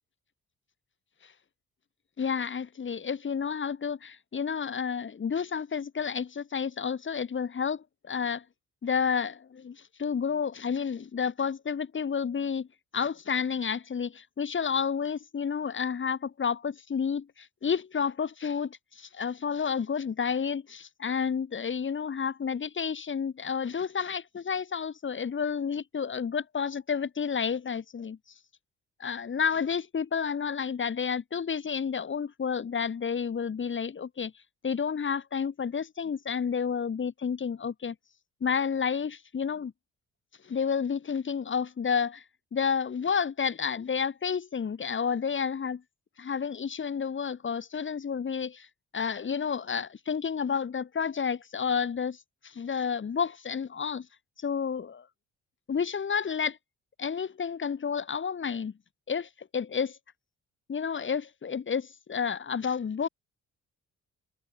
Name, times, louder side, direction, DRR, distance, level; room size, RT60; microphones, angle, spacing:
voice 1, 2.2-8.4 8.8-12.7 12.9-28.2 29.0-34.3 34.6-38.0 38.4-39.7 40.4-42.2 42.5-45.8 46.2-48.7 48.9-54.1 54.4-55.1 55.7-56.6 57.0-58.7 59.1-60.0 60.7-63.1, left 6 dB, 40° left, 2.4 m, -30 dB
cardioid pair, 90°, 30 cm